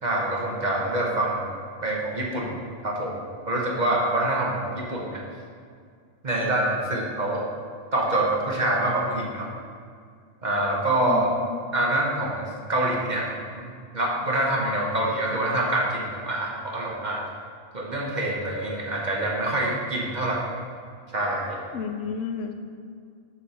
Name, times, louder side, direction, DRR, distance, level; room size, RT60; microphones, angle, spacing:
voice 1, 0.0-1.5 1.8-2.5 2.8-5.2 6.2-7.4 7.9-9.5 10.4-11.3 11.7-13.6 13.9-17.2 17.7-20.5 21.1-21.6, right 1 dB, 40° right, -2 dB, 1.1 m, -26 dB
voice 2, 11.1-11.6 21.7-22.5, left 6 dB, 85° left, 6 dB, 1.0 m, -31 dB
7.0 x 4.5 x 5.5 m, 2.2 s
omnidirectional pair, 1.3 m